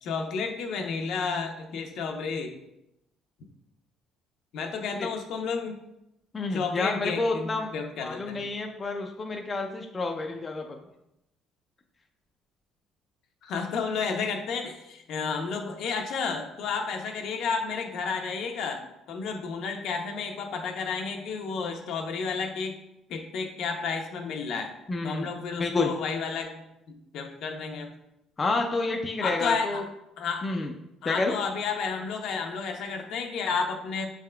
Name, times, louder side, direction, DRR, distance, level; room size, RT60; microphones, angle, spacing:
voice 1, 0.0-2.5 4.5-5.8 6.5-8.4 13.4-18.8 19.1-22.8 23.1-24.7 25.0-27.9 29.2-29.8 30.2-30.5 31.0-34.1, left 5 dB, 65° left, 3 dB, 0.7 m, -31 dB
voice 2, 6.3-7.7 8.0-10.8 24.9-25.3 25.6-25.9 28.4-29.8 30.4-30.7 31.0-31.3, left 3 dB, 25° left, 3 dB, 0.4 m, -29 dB
5.7 x 3.5 x 2.2 m, 0.85 s
cardioid pair, 130°, 0 cm